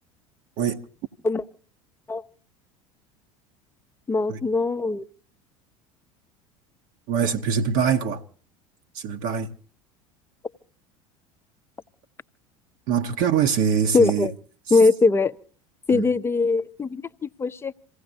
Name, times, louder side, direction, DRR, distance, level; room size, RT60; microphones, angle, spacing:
voice 1, 4.1-5.0 13.9-14.3 14.7-15.3 15.9-17.7, left 3 dB, 15° left, 0.6 m, -21 dB
voice 2, 7.1-8.2 8.9-9.5 12.9-14.3 15.9-16.0, right 7 dB, 50° right, 1.0 m, -23 dB
28.0 x 16.0 x 2.7 m
figure-of-eight pair, 70°, 17 cm